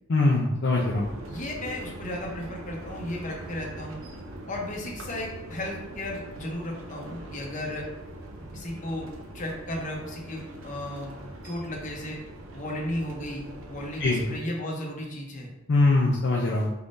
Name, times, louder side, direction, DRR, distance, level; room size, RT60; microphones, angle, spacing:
voice 1, 0.1-1.1 14.0-14.2 15.7-16.7, left 2 dB, 60° left, -3 dB, 0.5 m, -22 dB
sound 1, 0.7-14.4, right 1 dB, 90° right, 0.6 m, -42 dB
voice 2, 1.3-4.0 4.5-7.9 8.5-11.2 11.4-12.2 12.5-15.5, left 1 dB, 40° left, -1 dB, 0.9 m, -35 dB
4.5 x 3.6 x 2.6 m, 0.97 s
head